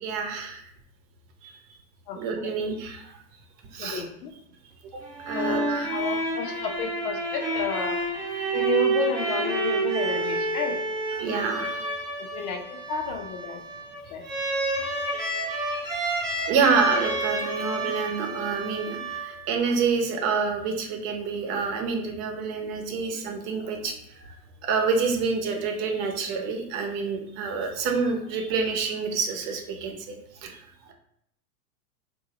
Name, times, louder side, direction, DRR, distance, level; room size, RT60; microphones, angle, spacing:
voice 1, 0.0-0.6 1.4-1.6 2.1-3.1 3.7-4.0 4.9-6.2 11.1-11.8 16.5-24.3 24.6-30.1 30.4-30.6, right 5 dB, 45° right, 3 dB, 0.9 m, -28 dB
voice 2, 3.8-4.3 5.3-8.0 8.5-10.8 12.3-13.6 14.1-14.2, left 5 dB, 60° left, 4 dB, 0.8 m, -31 dB
sound 1, 5.0-19.7, right 2 dB, 10° right, 0.5 m, -29 dB
3.7 x 2.7 x 2.8 m, 0.72 s
hypercardioid pair, 105°, 47 cm